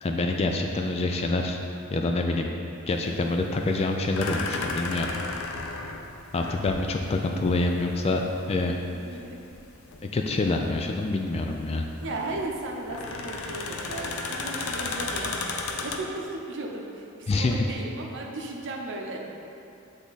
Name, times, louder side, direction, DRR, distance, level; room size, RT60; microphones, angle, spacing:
voice 1, 0.0-1.6 1.9-2.5 2.9-5.1 5.4-5.5 6.3-8.2 8.5-8.8 10.1-11.8 17.3-17.7, left 2 dB, 30° left, 3 dB, 0.3 m, -26 dB
sound 1, 2.9-16.0, left 3 dB, 75° left, 0.5 m, -35 dB
voice 2, 8.9-9.4 12.0-15.4 15.8-17.0 17.4-19.2, right 2 dB, 60° right, -1 dB, 0.7 m, -35 dB
8.1 x 3.5 x 4.0 m, 2.6 s
head